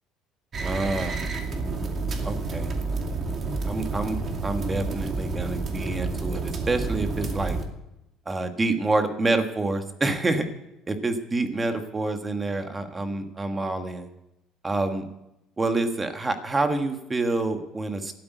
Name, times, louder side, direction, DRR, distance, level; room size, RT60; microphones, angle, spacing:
sound 1, 0.5-7.6, right 3 dB, 40° right, 2.4 m, -29 dB
voice 1, 0.6-1.2 2.2-2.7 3.6-7.6 8.2-10.4 10.9-14.1 14.6-15.1 15.6-18.1, right 2 dB, 20° right, 6 dB, 1.5 m, -27 dB
12.5 x 8.5 x 9.2 m, 0.87 s
cardioid pair, 120°, 0 cm